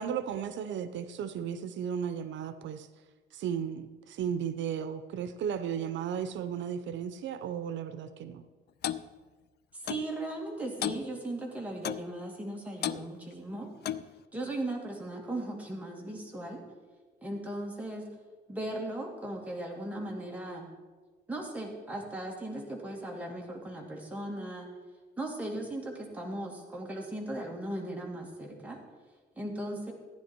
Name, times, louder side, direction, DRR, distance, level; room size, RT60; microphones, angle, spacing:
voice 1, 0.0-2.9 3.3-8.4, right 8 dB, 85° right, 11 dB, 0.7 m, -35 dB
Clock, 8.8-9.0 9.9-10.1 10.8-11.0 11.8-12.1 12.8-13.0 13.8-14.1, left 11 dB, 60° left, 0.4 m, -33 dB
voice 2, 9.7-13.7 14.3-16.6 17.2-18.0 18.5-20.7 21.3-24.7 25.2-28.8 29.4-29.9, right 1 dB, 10° right, -2 dB, 2.4 m, -37 dB
14.5 x 10.0 x 4.5 m, 1.3 s
cardioid pair, 135°, 19 cm